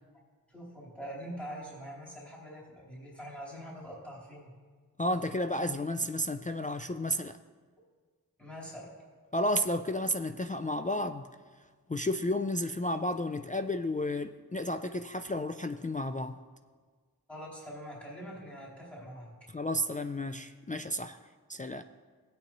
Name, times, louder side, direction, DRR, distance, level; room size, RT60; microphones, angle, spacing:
voice 1, 0.5-4.5 8.4-8.9 17.3-19.5, equal, 5° left, -7 dB, 3.8 m, -44 dB
voice 2, 5.0-7.4 9.3-11.3 11.9-16.4 19.5-21.2 21.5-21.8, left 1 dB, 20° left, 7 dB, 0.3 m, -32 dB
17.0 x 9.0 x 3.0 m, 1.5 s
wide cardioid pair, 40°, 38 cm